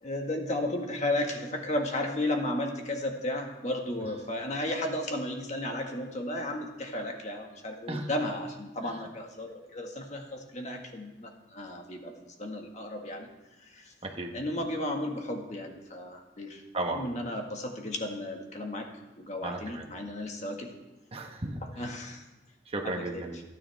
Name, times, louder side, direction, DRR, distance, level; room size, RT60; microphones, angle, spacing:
voice 1, 0.0-13.3 13.6-13.9 14.3-16.6 16.9-18.9 19.2-20.7 21.8-22.2 23.0-23.2, left 1 dB, 35° left, 2 dB, 1.8 m, -34 dB
voice 2, 14.0-14.4 16.7-17.0 19.4-19.9 21.1-22.0 22.6-23.4, right 2 dB, 30° right, 3 dB, 1.3 m, -35 dB
28.0 x 9.5 x 3.5 m, 1.1 s
head